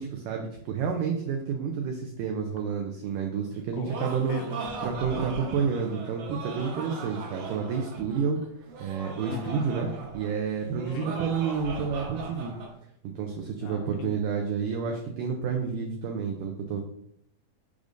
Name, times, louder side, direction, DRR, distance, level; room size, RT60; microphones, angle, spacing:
voice 1, 0.0-4.4 4.8-8.4 8.8-9.9 10.1-12.5 13.2-16.8, right 6 dB, 80° right, 2 dB, 1.9 m, -30 dB
Laughter, 3.5-12.7, right 3 dB, 65° right, 2.2 m, -39 dB
voice 2, 3.7-4.9 9.3-9.7 10.8-11.1 13.6-14.1, left 8 dB, 85° left, 4 dB, 2.0 m, -40 dB
8.3 x 5.1 x 2.6 m, 0.71 s
omnidirectional pair, 4.4 m